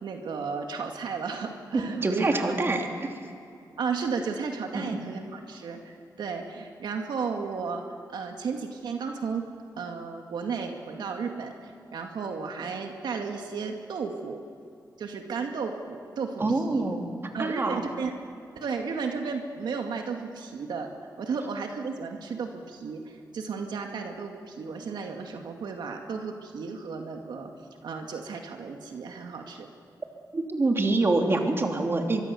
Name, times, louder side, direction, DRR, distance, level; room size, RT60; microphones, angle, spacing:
voice 1, 0.0-2.4 3.8-7.8 8.1-9.4 9.8-11.5 11.9-14.4 15.0-16.8 17.3-18.1 18.6-20.9 21.2-27.5 27.8-29.7, right 5 dB, 85° right, 3 dB, 2.2 m, -33 dB
voice 2, 2.0-3.1 4.7-5.0 16.4-17.0 17.4-17.8 30.3-32.3, right 2 dB, 35° right, 2 dB, 3.0 m, -26 dB
24.0 x 24.0 x 7.1 m, 2.5 s
wide cardioid pair, 115°, 7 cm